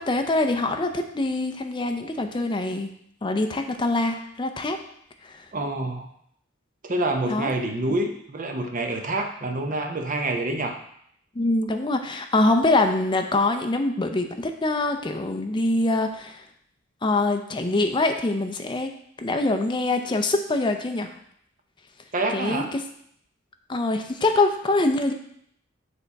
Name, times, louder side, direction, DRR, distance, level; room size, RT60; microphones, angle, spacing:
voice 1, 0.0-2.9 3.2-4.8 5.2-5.5 7.3-7.5 11.3-16.4 17.0-18.9 19.2-21.1 22.3-22.8 23.7-25.1, left 2 dB, 25° left, 5 dB, 0.5 m, -24 dB
voice 2, 5.5-6.1 6.8-10.8 22.1-22.7, right 2 dB, 40° right, 4 dB, 0.7 m, -27 dB
7.0 x 3.4 x 4.1 m, 0.68 s
head